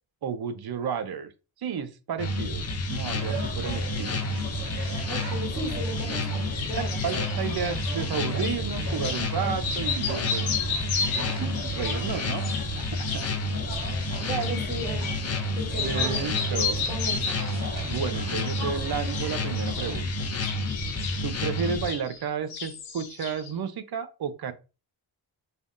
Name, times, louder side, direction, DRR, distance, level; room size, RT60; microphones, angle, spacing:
voice 1, 0.2-1.3 1.6-4.2 7.0-10.6 11.7-12.5 12.8-13.3 15.8-16.8 17.9-20.1 21.2-24.5, right 7 dB, 55° right, 11 dB, 0.6 m, -32 dB
sound 1, 2.2-21.9, left 2 dB, 35° left, 0.6 m, -30 dB
sound 2, 3.1-20.0, right 3 dB, 40° right, 1.6 m, -39 dB
voice 2, 5.1-7.4 14.2-15.2 15.5-17.4, right 2 dB, 10° right, -1 dB, 1.7 m, -36 dB
sound 3, 6.3-8.6 9.0-9.3 9.6-15.5 15.7-17.6 17.9-18.7 19.0-22.2 22.5-23.5, left 5 dB, 85° left, 0.8 m, -33 dB
3.3 x 2.3 x 2.5 m, 0.31 s
cardioid pair, 55°, 46 cm